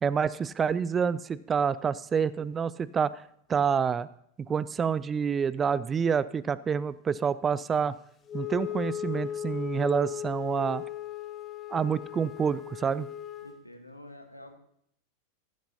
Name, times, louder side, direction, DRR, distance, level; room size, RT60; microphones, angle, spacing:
voice 1, 0.0-3.2 3.5-4.1 4.5-7.9 8.3-10.8 11.7-13.1, right 6 dB, 20° right, 18 dB, 0.4 m, -28 dB
Wind instrument woodwind instrument, 8.3-13.6, left 10 dB, 25° left, 0.9 m, -37 dB
voice 2, 13.4-14.6, left 1 dB, 85° left, 6 dB, 1.4 m, -48 dB
15.5 x 11.5 x 2.8 m, 0.70 s
figure-of-eight pair, 90°, 0 cm